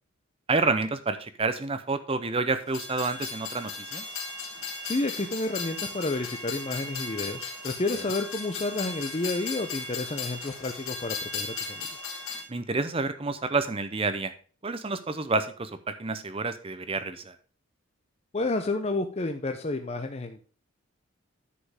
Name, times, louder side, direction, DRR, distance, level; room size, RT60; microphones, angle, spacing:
voice 1, 0.5-4.0 12.5-14.3 14.6-17.3, right 3 dB, 25° right, 11 dB, 0.6 m, -29 dB
Train, 2.7-12.4, left 4 dB, 70° left, 2.8 m, -36 dB
voice 2, 4.8-11.9 18.3-20.4, left 2 dB, 30° left, 6 dB, 0.6 m, -30 dB
10.0 x 5.2 x 4.9 m, 0.41 s
head